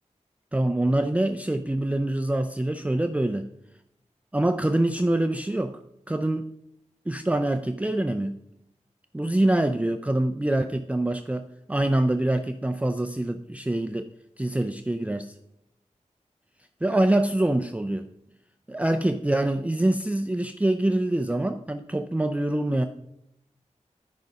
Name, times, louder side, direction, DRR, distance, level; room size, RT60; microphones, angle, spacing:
voice 1, 0.5-3.5 4.3-5.8 6.1-6.5 7.1-8.4 9.1-14.1 14.4-15.3 16.8-18.1 18.7-22.9, right 1 dB, 10° right, 7 dB, 0.4 m, -25 dB
10.5 x 5.4 x 5.2 m, 0.81 s
wide cardioid pair, 70°, 13 cm